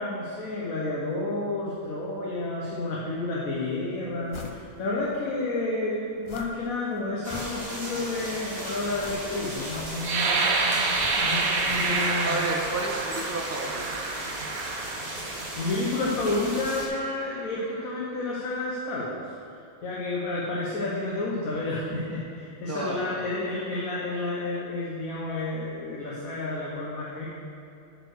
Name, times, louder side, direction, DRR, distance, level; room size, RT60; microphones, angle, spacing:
voice 1, 0.0-12.4 15.2-19.2 19.8-27.3, left 2 dB, 80° left, -5 dB, 1.5 m, -30 dB
sound 1, 4.3-4.6 5.0-5.1 6.3-6.8 7.1-8.0 9.0-10.3 11.0-12.2 12.5-12.6, left 4 dB, 50° left, 0.3 m, -43 dB
sound 2, 7.2-16.9, right 1 dB, 30° right, 1.4 m, -36 dB
sound 3, 10.0-15.7 16.3-16.5 17.0-17.4, right 3 dB, 90° right, 1.4 m, -28 dB
voice 2, 11.7-14.0 22.6-23.4, right 2 dB, 10° right, -1 dB, 0.9 m, -32 dB
9.0 x 5.1 x 6.4 m, 2.7 s
omnidirectional pair, 1.4 m